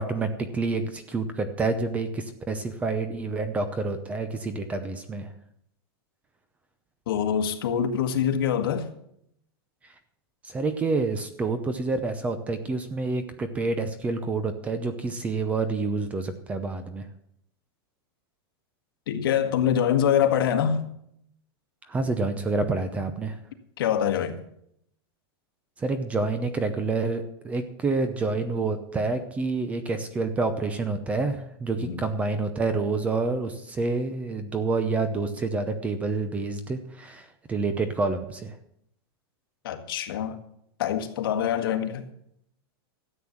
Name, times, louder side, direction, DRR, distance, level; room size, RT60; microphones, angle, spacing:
voice 1, 0.0-5.3 10.4-17.1 21.8-23.4 25.8-38.6, right 3 dB, 10° right, 0.7 m, -28 dB
voice 2, 7.1-8.9 19.1-20.9 23.8-24.4 31.8-32.0 39.6-40.4 40.8-42.0, left 9 dB, 65° left, 1.7 m, -25 dB
13.0 x 8.1 x 7.2 m
supercardioid pair, 170°, 13 cm